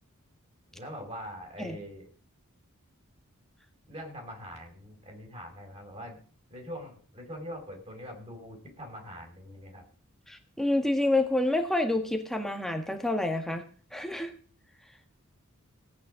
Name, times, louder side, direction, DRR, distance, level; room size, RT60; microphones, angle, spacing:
voice 1, 0.7-2.1 3.9-6.2 6.5-9.9, equal, 30° right, 2 dB, 5.2 m, -43 dB
voice 2, 10.3-13.6 13.9-14.3, left 2 dB, ahead, 5 dB, 1.6 m, -28 dB
17.5 x 9.0 x 5.0 m, 0.43 s
head